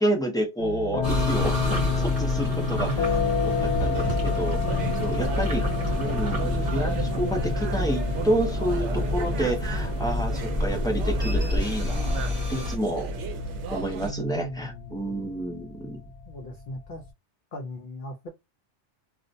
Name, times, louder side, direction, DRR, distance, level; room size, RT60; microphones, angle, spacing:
voice 1, 0.0-1.6 2.0-3.1 3.4-5.7 6.0-12.2 12.5-13.1 13.7-16.0, right 1 dB, 5° left, 0.3 m, -29 dB
sound 1, 0.6-17.1, left 5 dB, 80° left, 0.9 m, -31 dB
sound 2, 1.0-12.8, left 1 dB, 40° right, 1.0 m, -28 dB
voice 2, 2.5-3.4 5.2-6.4 14.0-15.3 16.3-17.0 17.5-18.3, equal, 60° left, 0.6 m, -38 dB
sound 3, 3.9-14.1, right 2 dB, 85° right, 0.9 m, -33 dB
2.4 x 2.1 x 2.6 m
omnidirectional pair, 1.2 m